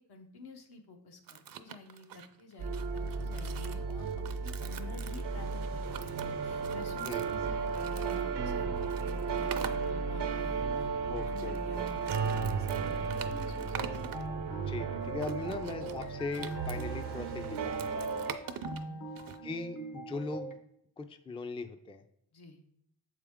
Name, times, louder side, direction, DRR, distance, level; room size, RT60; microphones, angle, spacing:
voice 1, 0.0-14.2 14.6-16.4 18.8-19.1 22.3-22.6, left 3 dB, 70° left, 3 dB, 1.0 m, -51 dB
sound 1, 1.3-8.2 8.8-9.9 11.2-14.2 15.2-19.4, right 8 dB, 60° right, 0.6 m, -45 dB
sound 2, 2.6-18.3, right 5 dB, 90° right, 0.8 m, -34 dB
voice 2, 7.0-7.5 11.1-11.9 14.7-18.3 19.4-20.6 21.0-22.0, left 3 dB, 15° left, 8 dB, 0.4 m, -40 dB
sound 3, 13.7-20.5, right 1 dB, 50° left, 0.9 m, -43 dB
6.8 x 4.8 x 3.6 m, 0.73 s
cardioid pair, 85°, 40 cm